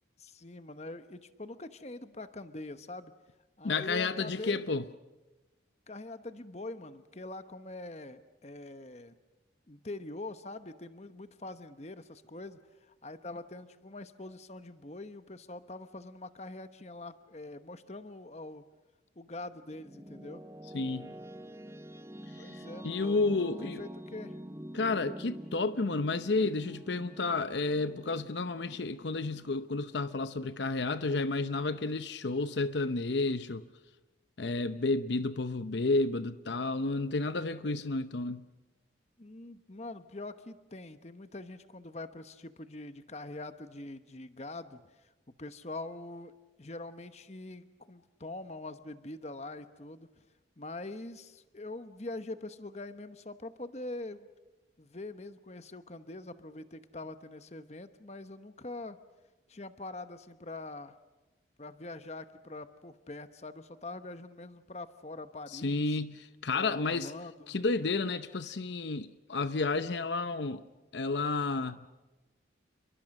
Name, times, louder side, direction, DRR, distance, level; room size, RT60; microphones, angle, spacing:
voice 1, 0.2-3.1 3.6-4.6 5.9-9.1 9.7-12.6 13.0-18.7 19.2-20.4 22.3-24.4 39.2-44.8 45.4-46.3 46.6-50.1 50.6-54.3 54.8-59.0 59.5-61.0 61.6-65.9 66.5-67.6, left 2 dB, 35° left, 1.0 m, -44 dB
voice 2, 3.6-4.8 20.7-21.1 22.8-23.8 24.7-33.6 34.4-38.4 65.5-67.1 67.5-70.6 70.9-71.9, left 3 dB, 70° left, 0.7 m, -31 dB
sound 1, 19.3-30.3, equal, 15° right, 0.7 m, -47 dB
28.5 x 23.0 x 6.6 m
head